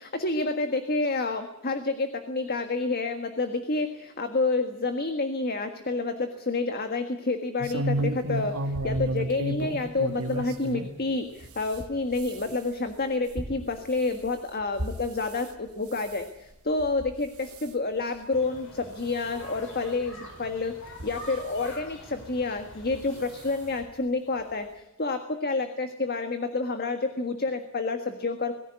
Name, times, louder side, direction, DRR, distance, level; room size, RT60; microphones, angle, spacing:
voice 1, 0.0-28.5, left 3 dB, 45° left, 7 dB, 1.6 m, -29 dB
sound 1, 7.6-10.9 11.4-15.5 15.9-16.3 16.8-17.1 17.4-17.7 18.3-18.4 18.8-18.9 20.0-20.1 20.9-21.7 22.8-23.0 23.4-23.5 23.8-23.9, right 1 dB, 75° right, 2.1 m, -33 dB
sound 2, 18.3-23.8, left 1 dB, 60° left, 5.8 m, -46 dB
22.5 x 14.5 x 9.4 m, 0.92 s
head